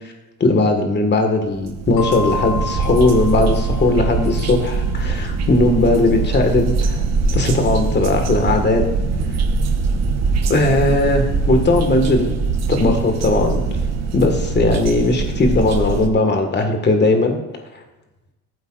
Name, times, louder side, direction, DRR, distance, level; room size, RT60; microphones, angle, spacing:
voice 1, 0.4-7.0 7.3-8.8 10.5-12.4 12.7-13.6 14.1-17.4, left 2 dB, 30° left, 4 dB, 1.9 m, -18 dB
sound 1, 1.5-16.1, right 4 dB, 50° right, 1.1 m, -22 dB
sound 2, 2.0-4.5, left 4 dB, 75° left, 1.5 m, -30 dB
14.0 x 8.3 x 2.6 m, 1.1 s
cardioid pair, 105°, 34 cm